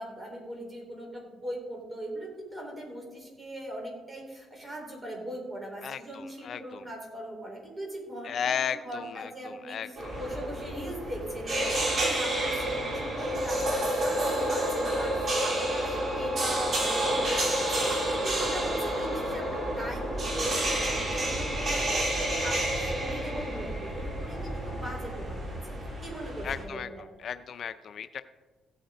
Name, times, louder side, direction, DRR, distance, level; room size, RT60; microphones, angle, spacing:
voice 1, 0.0-25.6 26.0-27.0, right 1 dB, 20° right, -1 dB, 4.5 m, -40 dB
voice 2, 5.8-6.8 8.2-10.2 26.4-26.9 27.2-28.2, left 8 dB, 60° left, 11 dB, 0.5 m, -35 dB
sound 1, 10.0-26.6, right 1 dB, 45° right, 3.8 m, -29 dB
15.5 x 9.1 x 4.0 m, 1.3 s
cardioid pair, 90°, 0 cm